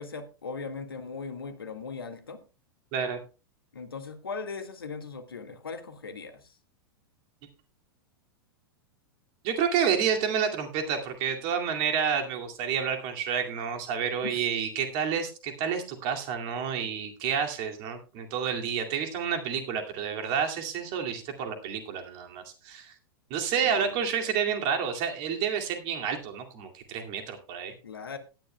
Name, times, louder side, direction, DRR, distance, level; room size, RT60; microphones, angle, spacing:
voice 1, 0.0-2.4 3.7-6.6 14.2-14.5 16.8-16.9 23.6-24.0 27.8-28.2, left 5 dB, 75° left, 8 dB, 1.7 m, -39 dB
voice 2, 9.4-22.9 23.3-27.7, right 7 dB, 40° right, 4 dB, 2.2 m, -29 dB
18.0 x 10.5 x 2.2 m, 0.31 s
figure-of-eight pair, 95°, 12 cm